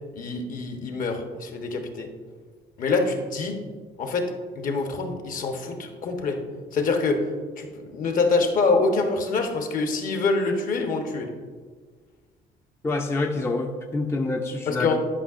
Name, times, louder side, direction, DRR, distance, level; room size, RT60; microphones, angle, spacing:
voice 1, 0.1-2.1 2.8-3.6 4.0-6.4 6.7-7.2 7.6-11.3 14.7-15.0, left 3 dB, 55° left, 4 dB, 1.1 m, -25 dB
voice 2, 12.8-15.0, left 3 dB, 15° left, 3 dB, 0.5 m, -27 dB
11.0 x 5.4 x 2.5 m, 1.5 s
cardioid pair, 110°, 17 cm